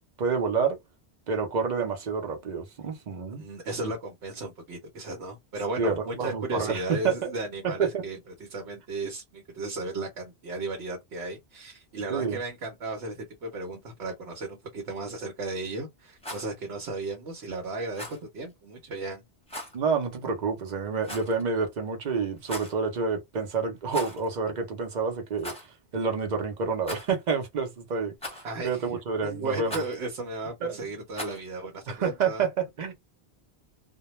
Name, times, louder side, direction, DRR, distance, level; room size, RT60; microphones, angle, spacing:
voice 1, 0.2-0.8 1.3-3.4 5.8-7.3 7.9-8.0 12.1-12.4 19.7-25.5 25.9-29.8 30.6-30.8 31.9-32.9, right 5 dB, 45° right, 0.7 m, -28 dB
voice 2, 3.4-19.2 28.4-32.5, right 2 dB, 75° right, 1.0 m, -35 dB
Rattle, 16.1-16.5 17.9-18.2 19.5-19.8 21.0-21.4 22.4-22.8 23.9-24.3 24.6-24.7 25.4-25.7 26.8-27.3 28.2-28.6 29.7-30.0 31.1-31.5, left 1 dB, 5° left, 0.8 m, -38 dB
2.2 x 2.2 x 3.0 m
omnidirectional pair, 1.1 m